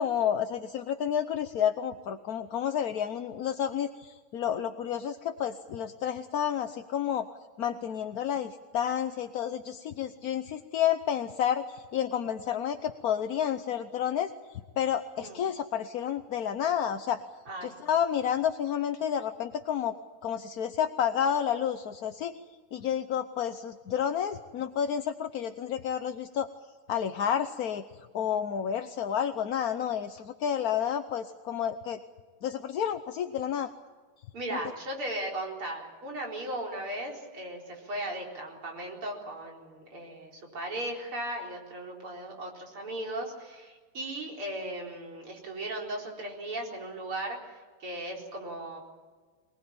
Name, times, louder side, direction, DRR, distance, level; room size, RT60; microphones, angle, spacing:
voice 1, 0.0-7.3 7.6-14.3 14.8-17.2 17.6-19.9 20.2-22.3 22.7-26.5 26.9-27.8 28.1-32.0 32.4-33.7, left 9 dB, 60° left, 8 dB, 1.1 m, -30 dB
voice 2, 34.3-47.5 47.8-48.8, right 1 dB, 75° right, 0 dB, 5.1 m, -37 dB
24.0 x 19.5 x 8.8 m, 1.4 s
omnidirectional pair, 2.4 m